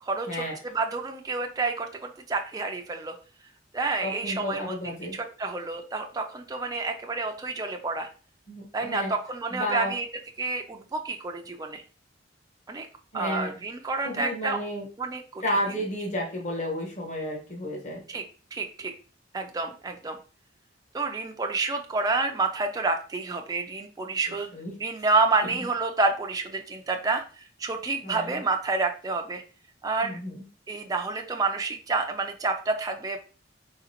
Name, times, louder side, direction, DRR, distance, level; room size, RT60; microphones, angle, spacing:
voice 1, 0.0-3.1 3.7-4.7 5.1-8.1 8.7-10.1 10.4-11.8 12.7-12.9 13.1-14.6 15.0-15.4 18.1-18.2 18.5-18.9 19.3-20.2 20.9-24.5 24.8-29.4 29.8-30.2 30.7-33.2, right 3 dB, 20° right, 3 dB, 0.4 m, -29 dB
voice 2, 4.0-5.1 8.5-9.1 9.5-9.9 13.1-13.5 14.0-14.8 15.4-18.0 24.5-24.7 28.0-28.4 30.0-30.4, equal, 40° left, -1 dB, 1.3 m, -32 dB
4.0 x 3.8 x 2.8 m, 0.37 s
head